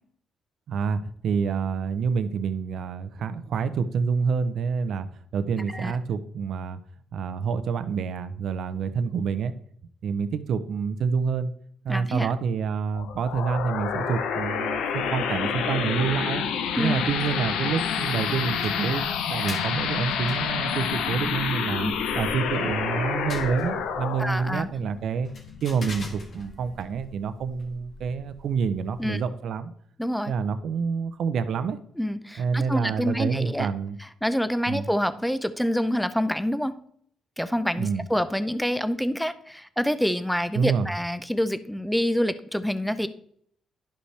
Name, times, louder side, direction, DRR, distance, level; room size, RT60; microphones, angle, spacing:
voice 1, 0.7-5.1 5.3-6.8 7.1-9.5 10.0-11.5 11.8-16.4 16.8-19.0 19.3-25.3 25.6-29.7 30.3-31.8 32.4-34.0 34.7-34.9 37.7-38.0 40.5-40.9, right 6 dB, 70° right, 11 dB, 0.6 m, -27 dB
voice 2, 11.9-12.3 16.8-17.0 21.8-22.0 24.2-24.7 29.0-29.2 30.0-30.3 32.0-33.7 34.2-36.7 37.4-43.1, equal, ahead, 13 dB, 0.6 m, -27 dB
sound 1, 12.9-26.1, left 7 dB, 90° left, 0.7 m, -28 dB
sound 2, 16.9-29.3, left 2 dB, 55° left, 1.6 m, -45 dB
11.5 x 5.4 x 3.3 m, 0.65 s
cardioid pair, 90°, 0 cm